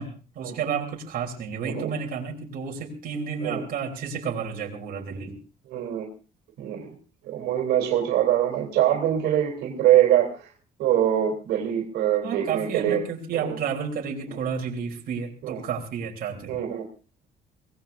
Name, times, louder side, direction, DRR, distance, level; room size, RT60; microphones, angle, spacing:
voice 1, 0.0-5.4 12.2-16.6, right 6 dB, 60° right, 0 dB, 3.4 m, -31 dB
voice 2, 5.7-6.1 6.6-6.9 7.2-10.5 10.8-13.0 13.3-13.6 15.4-15.6 16.5-16.8, right 11 dB, 80° right, 2 dB, 3.4 m, -23 dB
23.5 x 18.5 x 2.6 m, 0.34 s
cardioid pair, 110°, 17 cm